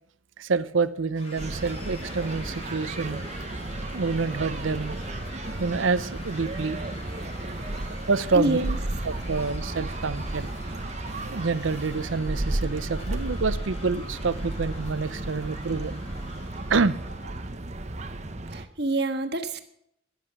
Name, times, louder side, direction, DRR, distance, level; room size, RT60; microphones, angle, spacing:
voice 1, 0.4-3.2 3.9-5.0 5.6-6.8 8.1-8.6 9.0-10.8 11.2-16.0 16.7-17.4, right 4 dB, 85° right, 15 dB, 0.7 m, -27 dB
sound 1, 1.2-17.5, left 2 dB, 30° left, 3.3 m, -45 dB
sound 2, 1.4-18.7, right 1 dB, 35° right, 0.9 m, -33 dB
voice 2, 8.3-8.8 18.5-19.6, right 2 dB, 55° right, 8 dB, 1.5 m, -27 dB
14.0 x 10.0 x 7.5 m, 0.73 s
head